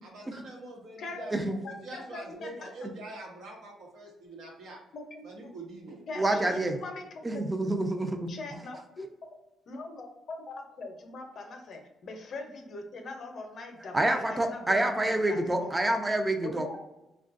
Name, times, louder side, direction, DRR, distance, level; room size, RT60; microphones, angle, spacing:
voice 1, 0.0-4.8 5.2-6.0, right 2 dB, 80° right, -1 dB, 1.0 m, -45 dB
voice 2, 1.0-1.3 1.6-2.7 4.9-5.3 6.1-7.1 7.3-7.4 8.3-9.1 9.7-15.9 16.4-16.8, left 3 dB, 60° left, 4 dB, 0.6 m, -41 dB
voice 3, 6.2-6.8 7.2-8.2 13.9-16.6, right 1 dB, 20° right, 5 dB, 0.4 m, -27 dB
3.7 x 2.3 x 2.5 m, 0.95 s
cardioid pair, 90°, 0 cm